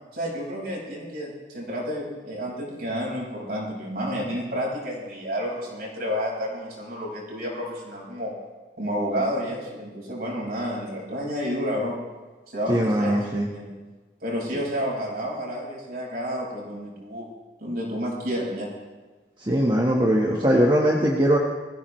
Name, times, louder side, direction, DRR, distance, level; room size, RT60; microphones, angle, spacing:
voice 1, 0.1-8.3 8.8-12.0 12.5-13.2 13.5-13.8 14.2-17.3 17.6-18.7, equal, 55° right, -3 dB, 5.2 m, -30 dB
voice 2, 12.7-13.5 19.4-21.4, equal, 25° right, -2 dB, 1.4 m, -21 dB
21.0 x 15.0 x 3.2 m, 1.3 s
head